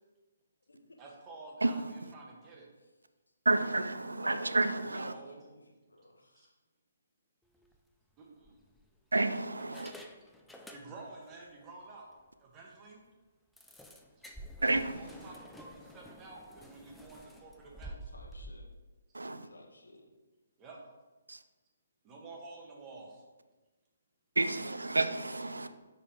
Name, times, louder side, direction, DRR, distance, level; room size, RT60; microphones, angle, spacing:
voice 1, 1.0-2.7 4.9-5.4 6.3-6.5 8.2-8.5 10.7-12.1 12.4-13.0 14.6-18.1 20.6-20.8 22.0-23.2, right 3 dB, 20° right, 1.1 m, -50 dB
voice 2, 3.5-5.1 9.1-9.9 14.6-15.1 19.1-19.5 21.3-21.4 24.4-25.7, right 2 dB, 75° right, 0.3 m, -30 dB
voice 3, 4.2-4.5 4.9-6.5 18.1-18.7 19.5-20.1, left 1 dB, 70° left, 1.0 m, -53 dB
sound 1, 7.5-7.8 8.4-9.1 9.6-11.2 11.6-11.7 12.1-12.2 12.5-12.6 13.6-18.5, equal, 5° left, 0.4 m, -50 dB
5.3 x 4.1 x 4.3 m
figure-of-eight pair, 135°, 0 cm